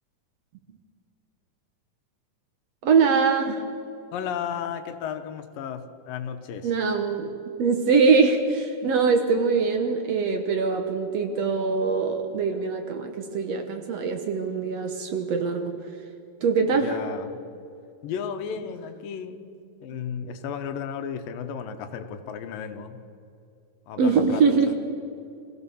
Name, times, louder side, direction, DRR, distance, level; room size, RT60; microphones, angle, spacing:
voice 1, 2.8-3.6 6.6-7.3 7.6-15.8 16.4-17.0 24.0-24.7, right 5 dB, 60° right, 5 dB, 1.9 m, -23 dB
voice 2, 4.1-6.7 16.8-17.3 18.0-19.5 19.8-23.0 23.9-24.7, left 7 dB, 85° left, 8 dB, 2.8 m, -34 dB
25.0 x 16.0 x 7.0 m, 2.6 s
omnidirectional pair, 3.9 m